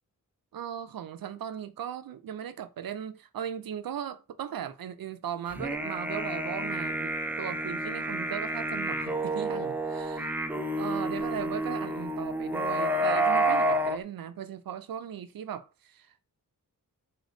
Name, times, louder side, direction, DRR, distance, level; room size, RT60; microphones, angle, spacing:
voice 1, 0.5-10.3 10.8-16.3, right 9 dB, 80° right, 0.6 m, -38 dB
sound 1, 5.5-14.0, right 1 dB, 5° right, 0.4 m, -29 dB
3.4 x 2.8 x 3.8 m
wide cardioid pair, 135°, 34 cm